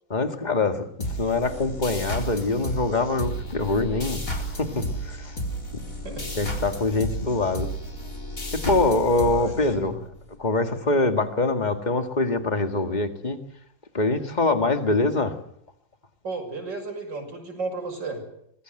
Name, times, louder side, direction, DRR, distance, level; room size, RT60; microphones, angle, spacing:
voice 1, 0.1-4.3 4.6-5.3 5.7-5.8 6.4-7.7 8.5-10.0 10.4-13.4 13.9-15.4, left 3 dB, 25° left, 6 dB, 2.1 m, -24 dB
sound 1, 1.0-10.2, right 1 dB, 50° left, 4.6 m, -32 dB
voice 2, 9.2-10.0 16.2-18.2, right 3 dB, 85° right, 4 dB, 6.9 m, -33 dB
25.0 x 21.5 x 7.9 m, 0.74 s
omnidirectional pair, 1.9 m